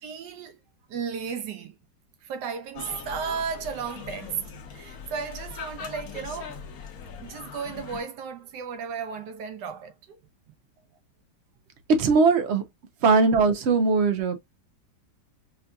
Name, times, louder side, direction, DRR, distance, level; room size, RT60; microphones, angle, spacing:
voice 1, 0.0-0.6 0.9-1.8 2.2-6.7 7.2-10.2, right 6 dB, 70° right, 1.2 m, -34 dB
sound 1, 2.7-8.0, left 7 dB, 60° left, 1.2 m, -41 dB
voice 2, 11.9-12.6 13.0-14.4, right 4 dB, 85° right, 0.5 m, -20 dB
5.4 x 2.6 x 2.2 m
omnidirectional pair, 2.0 m